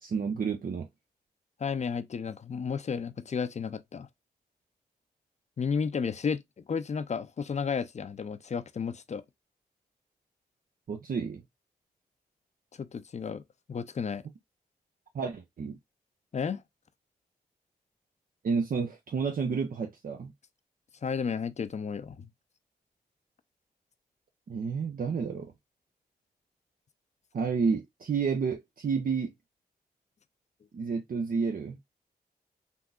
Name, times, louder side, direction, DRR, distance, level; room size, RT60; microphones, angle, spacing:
voice 1, 0.0-0.9 10.9-11.4 15.1-15.8 18.4-20.3 24.5-25.5 27.3-29.3 30.7-31.8, right 5 dB, 60° right, 0.6 m, -30 dB
voice 2, 1.6-4.1 5.6-6.4 6.7-9.2 12.8-13.4 13.7-14.2 16.3-16.6 21.0-22.3, left 6 dB, 45° left, 0.5 m, -32 dB
3.6 x 2.7 x 2.2 m
supercardioid pair, 45°, 17 cm